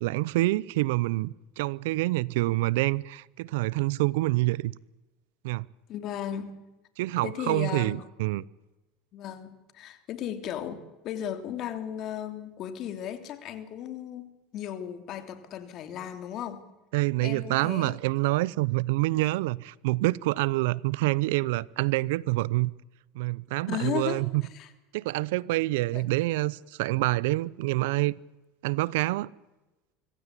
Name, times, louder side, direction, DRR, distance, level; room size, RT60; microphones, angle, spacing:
voice 1, 0.0-4.7 5.4-5.7 7.0-8.4 16.9-22.7 23.1-24.4 24.9-28.2 28.6-29.3, right 20 dB, 75° right, 0.6 m, -27 dB
voice 2, 5.9-6.6 7.2-8.0 9.1-16.6 17.2-18.0 23.7-24.7 25.9-26.0, left 10 dB, 55° left, 3.1 m, -36 dB
25.0 x 15.5 x 8.4 m
supercardioid pair, 95°, 0 cm